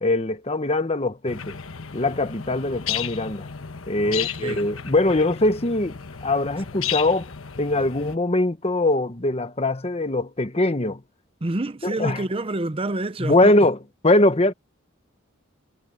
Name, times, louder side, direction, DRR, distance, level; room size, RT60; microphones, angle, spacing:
voice 1, 0.0-1.6 1.9-3.5 3.9-7.3 7.6-11.0 12.0-12.2 13.2-13.8 14.0-14.5, left 2 dB, 30° left, 1.1 m, -22 dB
sound 1, 1.3-8.2, left 8 dB, 80° left, 1.2 m, -33 dB
voice 2, 4.0-4.6 11.4-13.6, right 2 dB, 25° right, 0.7 m, -28 dB
head